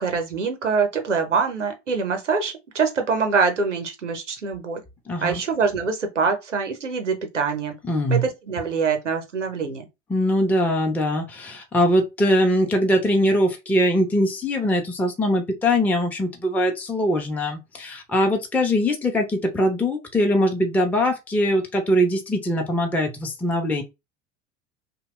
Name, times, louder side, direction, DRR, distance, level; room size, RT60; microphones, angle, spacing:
voice 1, 0.0-4.8 5.2-7.7 8.1-9.9, right 5 dB, 90° right, 0.7 m, -24 dB
voice 2, 5.1-5.4 7.9-8.2 10.1-23.8, equal, 5° left, 0.5 m, -22 dB
2.8 x 2.1 x 2.9 m
figure-of-eight pair, 70°, 35 cm